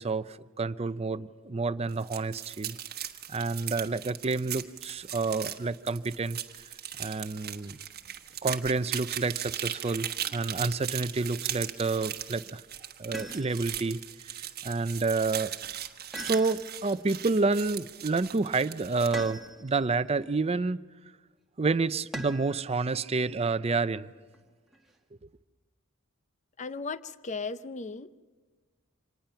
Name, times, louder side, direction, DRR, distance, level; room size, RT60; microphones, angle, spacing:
voice 1, 0.0-2.8 3.3-6.4 7.0-7.8 8.4-12.6 13.0-14.0 14.6-15.5 16.2-20.8 21.6-24.1, right 3 dB, 30° right, 0.5 m, -29 dB
sound 1, 1.9-19.3, right 10 dB, 50° right, 1.2 m, -38 dB
sound 2, 13.1-13.8 16.1-16.9 19.1-19.8 22.1-22.6 24.3-25.0, equal, ahead, 1.8 m, -41 dB
voice 2, 26.6-28.2, left 4 dB, 35° left, 0.6 m, -36 dB
26.0 x 19.5 x 5.7 m
head